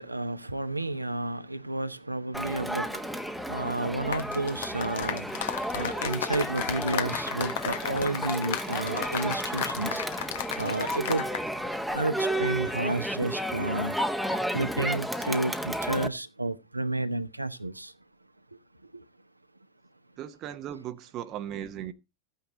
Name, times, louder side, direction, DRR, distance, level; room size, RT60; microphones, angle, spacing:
voice 1, 0.0-5.4 5.7-10.0 10.6-11.3 11.9-14.0 14.5-17.9 18.9-19.0, right 2 dB, 85° right, 1.0 m, -31 dB
Crowd, 2.3-16.1, equal, ahead, 1.1 m, -32 dB
sound 1, 4.0-11.5 11.7-12.0, left 10 dB, 55° left, 1.2 m, -34 dB
voice 2, 20.2-21.9, right 10 dB, 35° right, 0.9 m, -37 dB
14.5 x 9.3 x 4.0 m
figure-of-eight pair, 90°, 0 cm